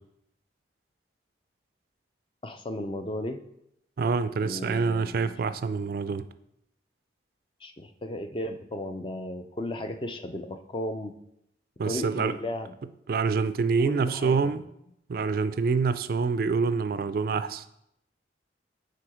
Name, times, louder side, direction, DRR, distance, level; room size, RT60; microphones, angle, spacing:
voice 1, 2.4-3.4 4.4-5.3 7.6-11.2 11.8-12.8 13.9-14.5, left 1 dB, 30° left, 0.5 m, -35 dB
voice 2, 4.0-6.3 11.8-12.4 13.1-14.6 15.1-17.6, right 4 dB, 55° right, 0.3 m, -26 dB
7.6 x 3.8 x 5.0 m
head